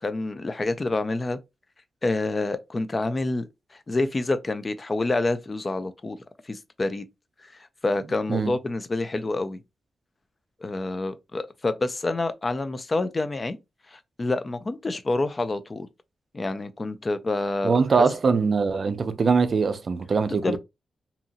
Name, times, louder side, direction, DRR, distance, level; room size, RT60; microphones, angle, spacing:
voice 1, 0.0-1.4 2.0-3.5 3.9-6.2 6.5-7.0 7.8-9.6 10.6-13.6 13.9-15.9 16.3-18.1 20.3-20.6, left 2 dB, 25° left, 0.3 m, -27 dB
voice 2, 17.6-20.6, right 5 dB, 45° right, 0.4 m, -22 dB
2.7 x 2.6 x 2.5 m
wide cardioid pair, 135°, 0 cm